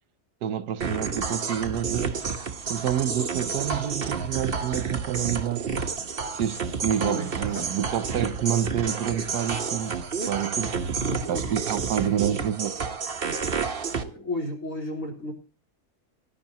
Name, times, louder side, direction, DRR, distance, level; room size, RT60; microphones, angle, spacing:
voice 1, 0.4-2.2 2.7-5.7 6.3-10.0 10.3-10.8 11.3-12.7, right 10 dB, 85° right, 1.3 m, -28 dB
sound 1, 0.8-14.0, right 5 dB, 40° right, 1.1 m, -30 dB
voice 2, 7.0-7.7 11.0-11.6 12.0-12.5 14.0-15.3, left 1 dB, 55° left, 4.1 m, -34 dB
18.5 x 10.0 x 2.9 m
omnidirectional pair, 1.7 m